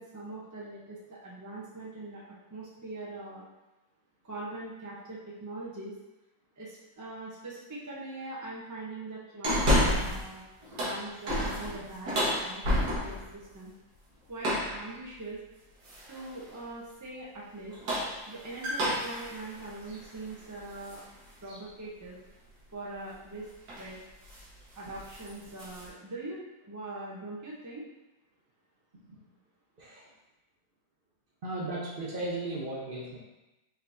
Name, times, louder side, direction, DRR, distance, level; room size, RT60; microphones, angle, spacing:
voice 1, 0.0-2.2 2.5-3.4 4.2-5.9 6.6-10.4 10.8-13.7 14.3-15.4 16.1-17.8 18.2-21.0 21.4-22.2 22.7-23.5 23.8-24.0 24.7-27.8, right 2 dB, 25° right, -5 dB, 0.4 m, -42 dB
sound 1, 9.4-10.3 10.6-13.3 14.4-14.8 15.8-16.3 17.6-21.0 21.5-21.6 23.1-23.3 23.7-23.9 24.2-24.5 24.8-25.9, equal, 80° right, 1.9 m, -30 dB
voice 2, 29.8-30.1 31.4-33.2, right 2 dB, 40° right, -5 dB, 0.9 m, -36 dB
5.1 x 3.5 x 2.6 m, 1.0 s
omnidirectional pair, 1.7 m